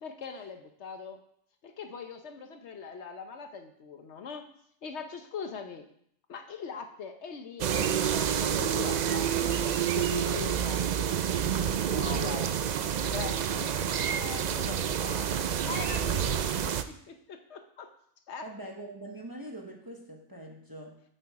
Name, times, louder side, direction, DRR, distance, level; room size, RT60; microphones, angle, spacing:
voice 1, 0.0-1.2 1.6-4.5 4.8-5.9 6.3-11.1 11.9-12.5 13.1-16.7 17.1-17.9 18.3-18.5, left 5 dB, 65° left, 6 dB, 1.0 m, -41 dB
sound 1, 7.6-16.8, right 9 dB, 90° right, 0.3 m, -28 dB
voice 2, 11.9-12.4 18.4-21.0, right 1 dB, 20° right, 1 dB, 0.9 m, -43 dB
7.9 x 7.8 x 4.7 m, 0.69 s
omnidirectional pair, 1.3 m